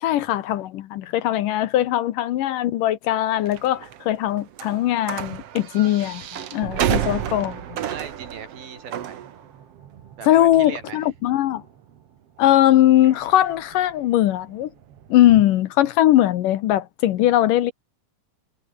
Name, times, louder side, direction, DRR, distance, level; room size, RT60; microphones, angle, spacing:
voice 1, 0.0-6.3 6.5-7.6 10.3-11.6 12.4-14.7 15.1-17.7, left 13 dB, 70° left, 2.4 m, -20 dB
sound 1, 3.5-15.4, right 10 dB, 60° right, 1.7 m, -32 dB
sound 2, 6.3-12.2, left 3 dB, 40° left, 8.0 m, -52 dB
voice 2, 6.7-7.4 7.8-9.3 10.2-11.1, right 7 dB, 75° right, 5.2 m, -39 dB
omnidirectional pair, 4.2 m